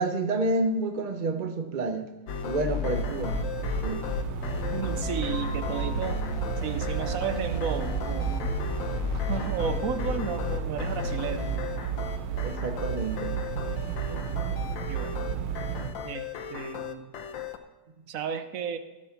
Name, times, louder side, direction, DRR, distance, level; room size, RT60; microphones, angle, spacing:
voice 1, 0.0-2.1 2.4-3.4 3.8-4.1 12.4-13.4, right 2 dB, 40° right, 7 dB, 0.7 m, -29 dB
sound 1, 2.3-17.6, left 5 dB, 85° left, 1.6 m, -34 dB
sound 2, 2.9-15.9, right 8 dB, 80° right, 1.6 m, -33 dB
sound 3, 4.1-12.4, left 1 dB, 50° left, 1.5 m, -41 dB
voice 2, 4.7-6.2 6.6-8.6 9.1-11.5 14.1-14.3 14.9-15.2 16.0-17.1 18.1-18.8, right 7 dB, 60° right, 10 dB, 0.9 m, -33 dB
16.0 x 6.2 x 5.9 m, 1.2 s
omnidirectional pair, 2.0 m